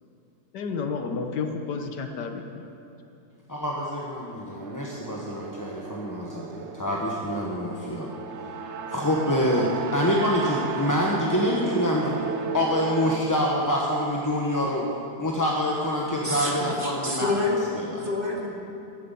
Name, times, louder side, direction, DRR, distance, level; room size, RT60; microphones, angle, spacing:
voice 1, 0.5-2.7, left 5 dB, 75° left, 5 dB, 1.6 m, -31 dB
voice 2, 3.5-8.1 8.9-12.3 12.5-14.9 15.2-17.3 17.7-18.1, left 1 dB, 15° left, -3 dB, 0.9 m, -26 dB
sound 1, 4.6-13.2, right 6 dB, 50° right, 0.9 m, -34 dB
voice 3, 16.2-17.6 18.0-18.5, left 2 dB, 30° right, -2 dB, 2.1 m, -28 dB
15.0 x 9.5 x 7.0 m, 2.8 s
omnidirectional pair, 1.8 m